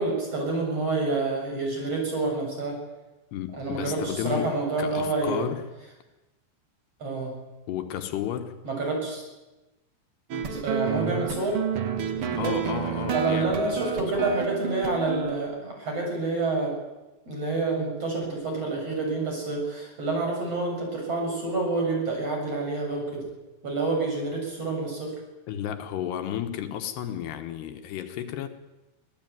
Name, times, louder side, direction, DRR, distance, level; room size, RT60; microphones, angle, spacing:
voice 1, 0.0-2.8 3.5-5.5 7.0-7.3 8.6-9.2 10.4-11.6 12.3-12.6 13.1-16.7 17.3-23.2 23.6-25.1, right 3 dB, 35° right, 1 dB, 7.7 m, -28 dB
voice 2, 3.3-4.5 4.8-5.6 7.7-8.6 12.4-14.4 25.5-28.5, left 10 dB, 75° left, 7 dB, 3.3 m, -32 dB
sound 1, 10.3-15.4, right 7 dB, 80° right, 1.2 m, -30 dB
25.5 x 16.0 x 9.4 m, 1.1 s
omnidirectional pair, 4.9 m